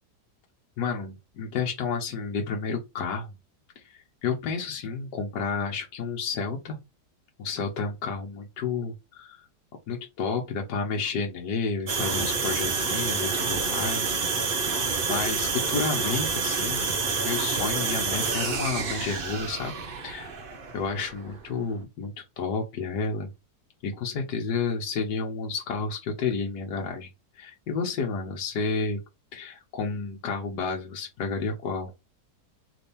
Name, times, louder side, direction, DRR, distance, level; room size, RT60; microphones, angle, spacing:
voice 1, 0.8-3.3 3.8-6.8 7.4-9.4 9.9-14.4 15.0-19.8 20.0-20.4 20.7-23.3 23.8-27.1 27.3-29.0 29.3-31.9, left 5 dB, 80° left, 1.5 m, -31 dB
sound 1, 11.9-21.7, right 4 dB, 45° right, 0.8 m, -28 dB
3.5 x 3.4 x 4.2 m
omnidirectional pair, 1.8 m